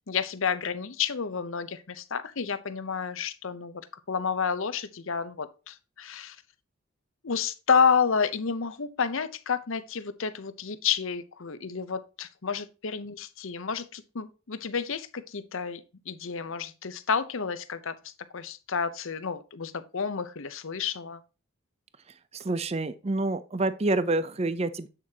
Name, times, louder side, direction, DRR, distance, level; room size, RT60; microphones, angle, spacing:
voice 1, 0.0-6.4 7.2-21.2, left 6 dB, 65° left, 0.7 m, -30 dB
voice 2, 22.3-24.9, right 2 dB, 30° right, 0.5 m, -27 dB
8.4 x 7.3 x 2.8 m
head